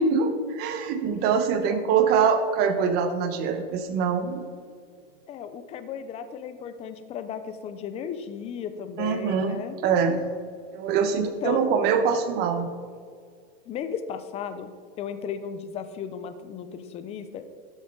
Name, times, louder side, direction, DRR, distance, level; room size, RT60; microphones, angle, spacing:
voice 1, 0.0-4.4 9.0-9.6 9.8-10.2 10.7-12.7, right 6 dB, 35° right, 8 dB, 1.0 m, -24 dB
voice 2, 1.6-1.9 5.3-9.8 11.2-11.6 13.7-14.7 15.0-17.5, left 7 dB, 20° left, 10 dB, 0.6 m, -35 dB
12.5 x 7.7 x 3.8 m, 2.1 s
supercardioid pair, 145°, 30 cm